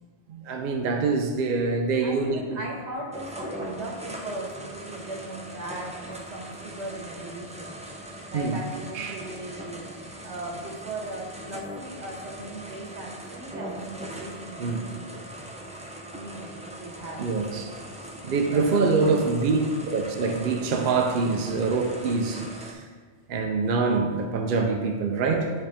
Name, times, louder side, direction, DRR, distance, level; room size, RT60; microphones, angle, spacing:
voice 1, 0.3-2.6 8.3-8.6 8.9-9.2 14.6-14.9 17.2-17.7 18.2-22.8 23.3-25.5, right 4 dB, 60° right, 4 dB, 0.7 m, -25 dB
voice 2, 2.0-7.7 8.3-9.9 10.2-15.1 16.1-17.3 18.5-19.3 21.3-21.4, right 2 dB, 90° right, -1 dB, 1.5 m, -38 dB
sound 1, 3.1-22.7, right 1 dB, 10° right, 0.4 m, -40 dB
10.0 x 3.4 x 3.5 m, 1.5 s
omnidirectional pair, 1.1 m